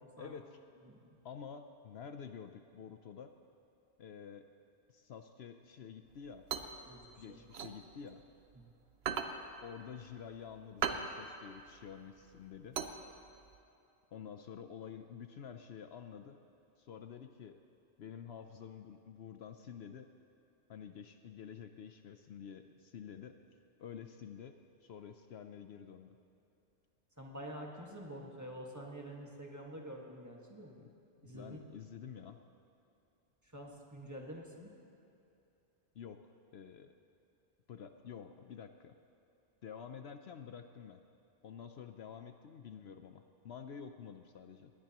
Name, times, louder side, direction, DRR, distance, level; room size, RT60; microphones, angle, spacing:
voice 1, 0.2-0.6 1.2-3.3 4.0-4.5 4.9-6.4 7.2-8.2 9.6-12.8 14.1-16.4 16.8-17.6 18.0-20.1 20.7-23.4 23.8-24.6 24.8-26.2 30.8-30.9 31.2-32.4 35.9-36.2 36.5-36.9 37.7-38.9 39.6-41.0 41.4-44.7, left 7 dB, 65° left, 7 dB, 0.9 m, -49 dB
sound 1, 6.1-8.6 8.9-13.6, right 6 dB, 65° right, 1.0 m, -39 dB
voice 2, 6.9-7.4 8.5-8.7 27.2-30.7 31.2-31.6 33.4-34.7, equal, 15° right, -1 dB, 1.6 m, -48 dB
20.5 x 18.5 x 3.0 m, 2.8 s
omnidirectional pair, 1.2 m